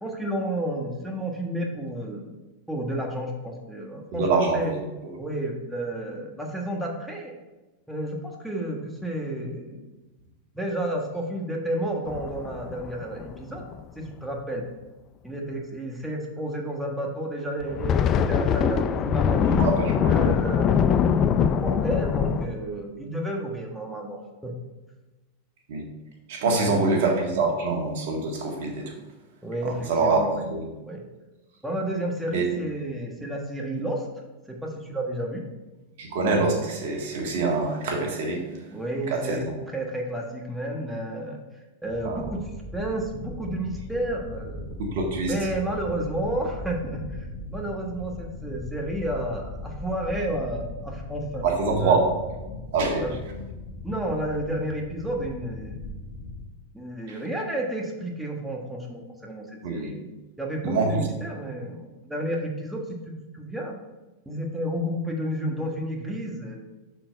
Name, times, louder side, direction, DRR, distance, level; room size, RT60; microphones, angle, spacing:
voice 1, 0.0-2.3 2.7-4.7 5.2-7.3 7.9-9.9 10.5-13.7 13.9-14.6 15.2-19.7 20.1-21.1 21.4-24.5 26.4-26.7 29.4-30.5 30.9-31.0 31.6-34.1 34.5-35.4 38.7-41.4 41.8-44.8 45.2-51.5 51.8-52.0 53.0-53.1 53.8-55.8 56.7-60.1 60.4-63.0 63.3-63.7 64.2-66.6, right 1 dB, 5° right, -1 dB, 1.4 m, -31 dB
voice 2, 4.1-5.1 19.5-20.3 25.7-25.8 26.3-28.9 29.6-30.2 30.5-30.7 32.3-32.5 36.0-38.4 39.1-39.5 42.0-42.2 44.8-45.3 51.4-52.0 52.7-53.1 57.1-57.2 59.6-59.9 60.6-60.9, right 3 dB, 65° right, 1 dB, 1.6 m, -25 dB
sound 1, 12.1-13.8 17.6-22.5, left 7 dB, 35° left, 0.4 m, -23 dB
sound 2, 41.8-56.5, left 2 dB, 15° left, 1.5 m, -39 dB
6.1 x 4.5 x 4.5 m, 1.1 s
hypercardioid pair, 105°, 0 cm